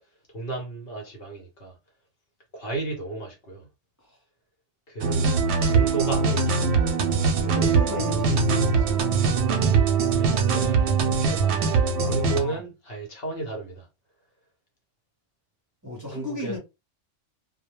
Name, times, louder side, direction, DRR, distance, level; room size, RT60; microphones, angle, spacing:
voice 1, 0.3-1.7 2.5-3.7 4.9-6.9 10.2-13.9 16.1-16.6, right 3 dB, 55° left, 1.0 m, -34 dB
sound 1, 5.0-12.4, right 5 dB, 70° right, 0.8 m, -22 dB
voice 2, 7.3-9.0 12.1-12.6 15.8-16.6, left 2 dB, 20° right, 0.7 m, -35 dB
2.2 x 2.1 x 2.9 m
omnidirectional pair, 1.2 m